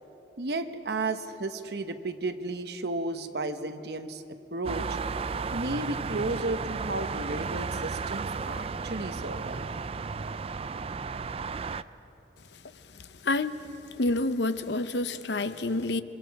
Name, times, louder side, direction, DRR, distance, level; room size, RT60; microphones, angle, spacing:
voice 1, 0.4-4.2 4.5-5.0 5.5-9.7, right 2 dB, 65° right, 8 dB, 1.1 m, -33 dB
sound 1, 4.6-11.8, right 4 dB, 35° right, 0.4 m, -34 dB
voice 2, 12.9-13.7 14.0-16.0, left 2 dB, 80° left, 11 dB, 0.8 m, -28 dB
26.5 x 23.0 x 4.8 m, 3.0 s
head